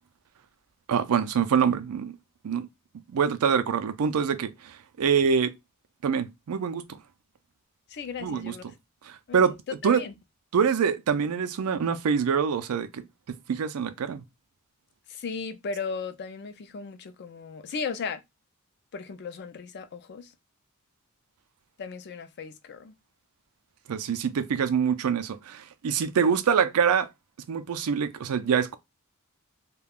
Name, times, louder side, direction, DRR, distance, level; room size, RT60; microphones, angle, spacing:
voice 1, 0.9-2.2 2.4-2.7 3.1-5.5 6.0-6.8 8.2-8.5 9.0-9.6 9.8-10.0 10.5-13.0 13.5-14.2 23.9-27.1 27.5-28.8, right 6 dB, 85° right, 0.4 m, -25 dB
voice 2, 7.9-8.7 9.3-9.4 9.8-10.1 15.1-18.2 18.9-20.3 21.8-22.9, left 5 dB, 50° left, 0.4 m, -36 dB
2.3 x 2.2 x 3.4 m
head